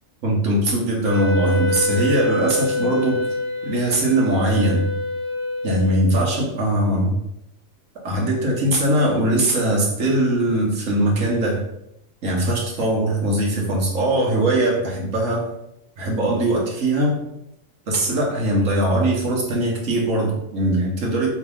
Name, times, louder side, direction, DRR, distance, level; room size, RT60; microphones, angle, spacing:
voice 1, 0.2-3.2 3.6-4.9 5.6-7.2 8.0-11.6 12.2-15.5 16.0-17.2 17.9-21.3, right 1 dB, 65° right, -2 dB, 1.5 m, -21 dB
Wind instrument woodwind instrument, 1.0-6.2, left 1 dB, 50° left, 1.4 m, -26 dB
3.6 x 3.5 x 3.5 m, 0.80 s
omnidirectional pair, 1.4 m